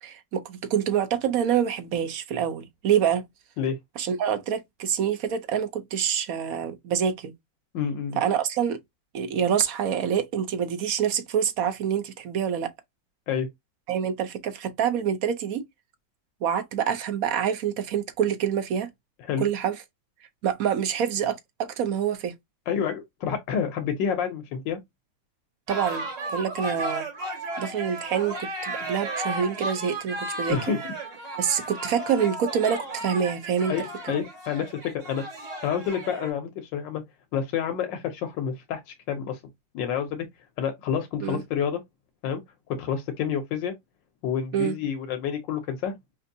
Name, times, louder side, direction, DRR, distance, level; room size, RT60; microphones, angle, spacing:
voice 1, 0.0-3.2 4.0-7.3 8.2-8.8 9.1-12.7 13.9-15.6 16.4-18.9 19.4-19.8 20.4-22.3 25.7-26.0 26.3-27.1 27.6-30.7 31.4-33.7 41.2-41.4 44.5-44.8, right 8 dB, 60° right, 1.0 m, -26 dB
voice 2, 7.7-8.2 13.3-13.5 19.2-19.4 22.7-24.8 30.5-30.8 33.7-35.3 35.6-37.0 37.3-39.4 39.7-40.3 40.6-41.8 42.2-42.4 42.7-43.7 44.2-45.9, left 8 dB, 85° left, 1.4 m, -28 dB
sound 1, 25.7-36.3, right 2 dB, 80° right, 3.2 m, -34 dB
5.1 x 2.6 x 2.7 m
omnidirectional pair, 1.9 m